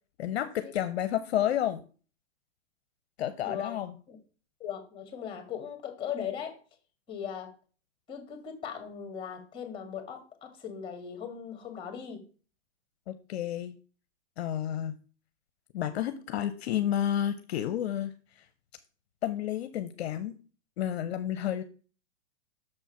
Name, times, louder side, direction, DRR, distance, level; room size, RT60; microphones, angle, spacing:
voice 1, 0.2-1.8 3.2-3.9 13.1-13.8 14.4-15.0 15.7-18.1 18.4-18.5 19.2-20.4 20.8-21.6, left 11 dB, 55° left, 11 dB, 0.7 m, -30 dB
voice 2, 3.4-3.7 4.1-4.2 4.6-6.6 7.1-7.5 8.1-12.2, left 8 dB, 15° left, 6 dB, 1.9 m, -38 dB
6.4 x 4.5 x 5.8 m, 0.38 s
hypercardioid pair, 145°, 37 cm